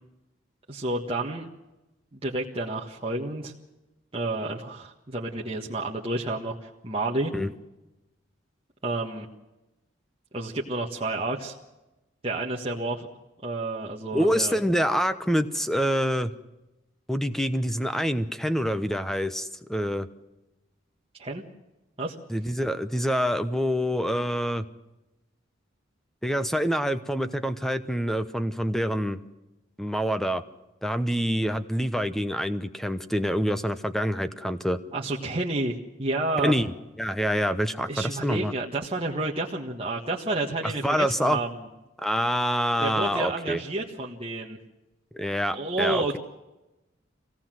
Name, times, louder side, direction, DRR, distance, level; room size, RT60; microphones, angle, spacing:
voice 1, 0.7-1.5 2.1-3.5 4.1-7.3 8.8-9.3 10.3-11.5 12.2-13.1 13.4-14.6 21.2-21.4 22.0-22.2 34.9-36.5 37.9-41.7 42.8-44.6 45.5-46.2, right 2 dB, 30° right, -3 dB, 1.6 m, -30 dB
voice 2, 14.1-16.3 17.1-20.1 22.3-24.7 26.2-29.2 29.8-30.4 30.8-34.8 36.4-36.7 37.0-38.5 40.6-41.4 42.0-43.6 45.1-46.2, equal, ahead, 11 dB, 0.9 m, -26 dB
24.5 x 17.5 x 7.7 m, 1.0 s
head